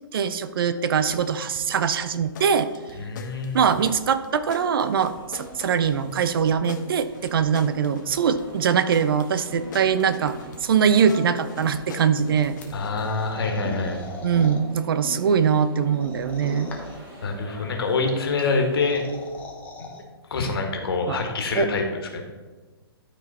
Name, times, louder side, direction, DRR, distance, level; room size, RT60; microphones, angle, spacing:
voice 1, 0.1-2.7 3.5-10.4 10.6-12.6 14.2-16.7 21.1-21.2 21.5-21.7, right 7 dB, 65° right, 13 dB, 0.6 m, -22 dB
sound 1, 1.1-13.1, left 5 dB, 50° left, 0.9 m, -44 dB
voice 2, 2.9-3.6 12.7-14.0 17.2-19.1 19.8-20.0 20.3-22.2, left 3 dB, 65° left, 2 dB, 1.8 m, -26 dB
sound 2, 4.7-19.4, equal, 25° right, 2.4 m, -42 dB
sound 3, 12.6-14.6 15.9-17.1 18.5-20.0, left 3 dB, 10° left, 0.9 m, -41 dB
12.5 x 4.3 x 4.2 m, 1.3 s
hypercardioid pair, 145°, 13 cm